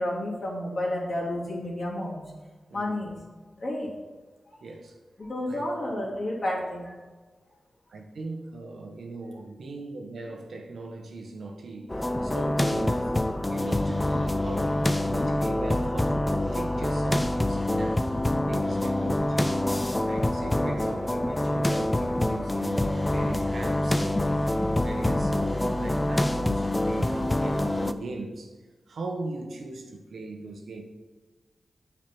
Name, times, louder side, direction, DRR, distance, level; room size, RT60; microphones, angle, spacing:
voice 1, 0.0-2.2 2.7-3.2 3.6-3.9 5.2-6.9, left 1 dB, 40° left, 3.0 m, -30 dB
voice 2, 4.6-4.9 5.5-5.7 7.9-19.5 20.0-24.5 24.8-28.6 28.9-30.8, right 2 dB, 75° right, 1.3 m, -39 dB
sound 1, 11.9-27.9, left 1 dB, 15° left, 0.4 m, -26 dB
8.9 x 5.0 x 6.0 m
wide cardioid pair, 120°, 0 cm